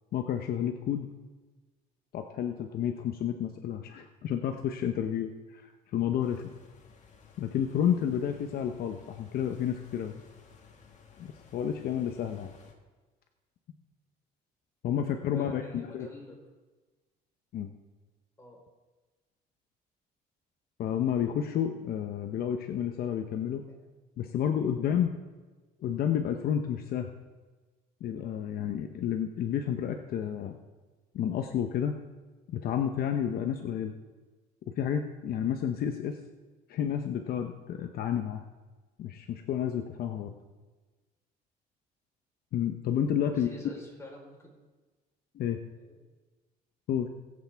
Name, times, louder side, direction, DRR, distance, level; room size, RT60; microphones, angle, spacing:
voice 1, 0.1-1.1 2.1-6.5 7.4-10.2 11.2-12.5 14.8-16.1 17.5-17.7 20.8-23.6 24.2-25.1 25.8-27.1 28.0-30.6 31.1-31.9 32.5-33.9 34.8-36.2 36.7-38.4 39.0-40.3 42.5-43.5 45.3-45.6 46.9-47.1, left 9 dB, 65° left, 5 dB, 0.9 m, -30 dB
sound 1, 6.2-12.7, left 6 dB, 45° left, 1.9 m, -56 dB
voice 2, 15.3-16.4 18.4-18.6 23.7-23.8 24.2-24.5 43.2-44.5 45.8-46.0, left 1 dB, 15° left, -1 dB, 4.1 m, -47 dB
20.5 x 8.3 x 3.5 m, 1.3 s
cardioid pair, 110°, 17 cm